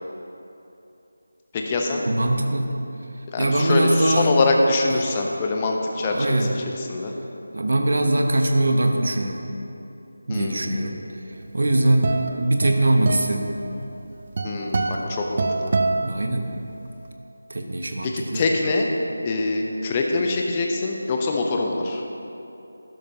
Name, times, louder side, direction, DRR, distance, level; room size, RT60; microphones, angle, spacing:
voice 1, 1.5-2.0 3.3-7.1 10.3-10.8 14.4-15.7 18.0-18.9 19.2-22.0, left 3 dB, 20° left, 1 dB, 0.8 m, -24 dB
voice 2, 2.1-2.8 3.4-4.3 6.1-6.5 7.5-9.4 10.3-11.0 11.5-13.6 16.0-16.5 17.5-18.4, right 1 dB, 50° right, 4 dB, 1.0 m, -22 dB
sound 1, 11.4-16.9, right 3 dB, 35° right, 0.5 m, -27 dB
12.5 x 11.5 x 2.9 m, 2.9 s
figure-of-eight pair, 160°, 0 cm